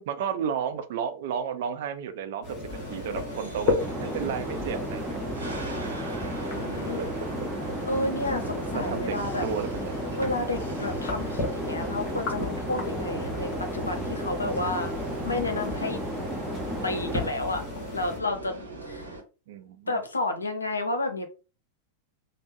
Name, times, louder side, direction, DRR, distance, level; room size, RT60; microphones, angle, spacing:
voice 1, 0.1-2.6 2.9-5.5 7.0-7.1 8.7-9.2 9.4-9.9 19.5-20.0, right 7 dB, 55° right, 0.5 m, -32 dB
sound 1, 2.4-18.2, left 3 dB, 35° left, 1.2 m, -36 dB
sound 2, 2.7-19.2, right 2 dB, 80° right, 0.9 m, -40 dB
sound 3, 3.8-17.3, right 1 dB, 10° right, 0.8 m, -34 dB
voice 2, 6.5-7.0 7.9-9.5 10.2-14.9 15.2-16.0 16.8-17.6 17.9-19.1 19.9-21.2, left 2 dB, 80° left, 0.6 m, -31 dB
3.4 x 2.0 x 3.0 m
figure-of-eight pair, 90°, 0 cm